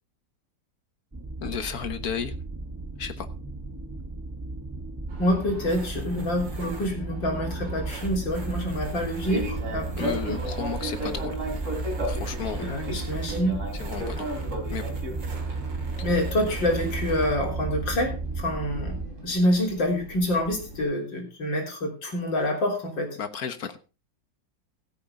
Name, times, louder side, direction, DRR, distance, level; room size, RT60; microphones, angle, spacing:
sound 1, 1.1-19.1, right 3 dB, 20° right, 0.4 m, -34 dB
voice 1, 1.4-2.3 3.0-3.3 10.0-11.4 12.0-12.7 13.8-14.4 14.7-14.9 23.2-23.8, left 7 dB, 55° left, 10 dB, 1.6 m, -33 dB
sound 2, 5.1-17.4, right 4 dB, 75° right, 2.7 m, -44 dB
voice 2, 5.2-10.4 12.6-13.6 16.0-23.1, left 1 dB, 75° left, 1 dB, 4.2 m, -27 dB
Fixed-wing aircraft airplane, 5.5-20.8, right 1 dB, 40° right, 3.8 m, -37 dB
15.5 x 8.9 x 3.8 m, 0.32 s
omnidirectional pair, 2.0 m